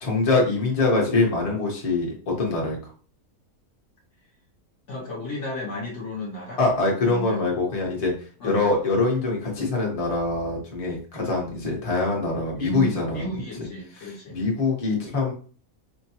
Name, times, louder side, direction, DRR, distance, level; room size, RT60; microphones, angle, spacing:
voice 1, 0.0-2.8 6.6-8.1 8.4-13.3 14.0-15.3, left 3 dB, 30° left, -2 dB, 0.9 m, -24 dB
voice 2, 4.9-6.6 7.0-7.5 8.4-8.6 12.5-14.4, equal, 60° left, -2 dB, 1.0 m, -33 dB
4.5 x 2.2 x 2.8 m, 0.41 s
omnidirectional pair, 1.5 m